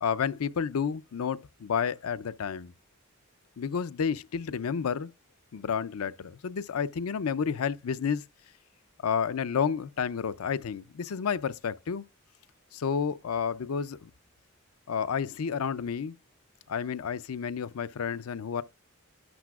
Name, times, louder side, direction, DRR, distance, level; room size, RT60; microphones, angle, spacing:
voice 1, 0.0-2.7 3.6-5.1 5.5-8.2 9.0-12.0 12.7-14.1 14.9-16.2 16.7-18.6, left 6 dB, 85° left, 0.5 m, -30 dB
12.0 x 8.1 x 2.4 m
head